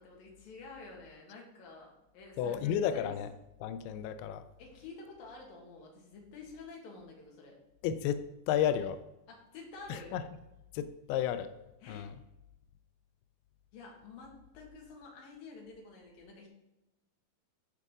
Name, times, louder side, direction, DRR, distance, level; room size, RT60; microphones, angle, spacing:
voice 1, 0.0-3.1 4.6-7.6 9.3-10.2 11.8-12.1 13.7-16.5, left 3 dB, 60° left, -1 dB, 3.2 m, -50 dB
voice 2, 2.4-3.3 3.6-4.5 7.8-9.0 9.9-10.2 10.7-11.5 11.9-12.1, left 9 dB, 90° left, 11 dB, 2.2 m, -32 dB
13.5 x 4.8 x 3.7 m, 0.93 s
omnidirectional pair, 5.1 m